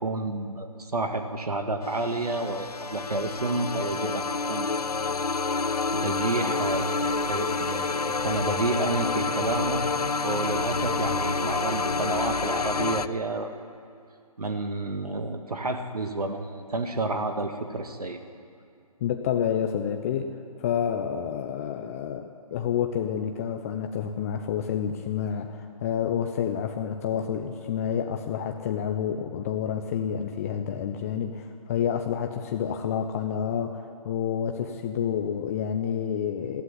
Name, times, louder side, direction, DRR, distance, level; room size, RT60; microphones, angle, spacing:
voice 1, 0.0-4.8 5.9-9.8 10.2-13.5 14.4-18.2, right 2 dB, 75° right, 6 dB, 2.0 m, -30 dB
sound 1, 1.8-13.1, left 4 dB, 80° left, 0.9 m, -28 dB
voice 2, 19.0-20.3 20.6-22.2 22.5-36.6, left 8 dB, 25° left, 5 dB, 0.8 m, -29 dB
20.0 x 15.5 x 9.8 m, 2.3 s
figure-of-eight pair, 145°, 19 cm